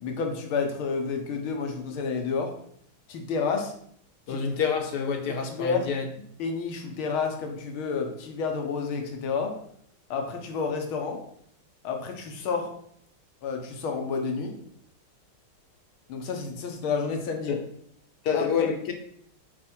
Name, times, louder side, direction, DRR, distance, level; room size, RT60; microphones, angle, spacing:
voice 1, 0.0-2.5 3.1-3.7 4.3-4.4 5.5-5.9 6.4-9.5 10.1-11.2 11.8-12.7 13.4-14.5 16.1-17.6 18.3-18.7, left 5 dB, 80° left, 3 dB, 2.0 m, -30 dB
voice 2, 4.3-6.0 17.5-17.6 18.2-18.9, left 6 dB, 60° left, 4 dB, 1.4 m, -27 dB
7.4 x 4.8 x 4.5 m, 0.66 s
omnidirectional pair, 2.2 m